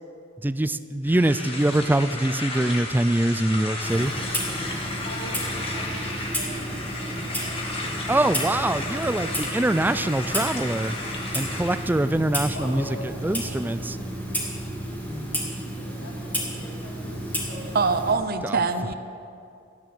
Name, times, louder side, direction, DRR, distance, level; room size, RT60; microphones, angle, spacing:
voice 1, 0.4-4.1 8.1-10.9 11.3-12.8 13.2-14.0 18.4-18.6, right 1 dB, 10° right, 13 dB, 0.4 m, -23 dB
sound 1, 1.0-12.0, left 2 dB, 30° left, 1.9 m, -34 dB
Clock, 3.8-18.1, equal, 10° left, 2.5 m, -32 dB
voice 2, 5.0-9.4 9.9-10.2 12.5-13.8 15.7-17.7 18.7-18.8, left 1 dB, 80° left, -5 dB, 4.5 m, -42 dB
voice 3, 17.7-18.9, right 4 dB, 50° right, 9 dB, 0.7 m, -23 dB
14.5 x 9.5 x 7.8 m, 2.5 s
head